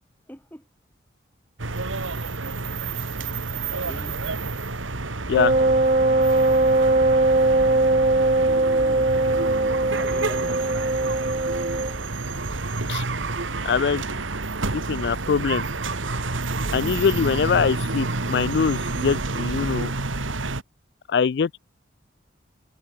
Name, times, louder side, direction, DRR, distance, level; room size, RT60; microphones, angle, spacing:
voice 1, 0.3-0.6 3.8-4.2 8.8-9.4 9.7-11.3, equal, 10° left, 2.6 m, -44 dB
sound 1, 1.6-20.6, right 3 dB, 85° right, 2.1 m, -29 dB
Wind instrument woodwind instrument, 5.3-12.0, right 2 dB, 35° right, 1.0 m, -20 dB
sound 2, 8.3-19.9, right 3 dB, 65° right, 1.1 m, -36 dB
voice 2, 13.6-14.0 14.7-15.6 16.7-19.9 21.1-21.6, left 6 dB, 60° left, 0.3 m, -23 dB
head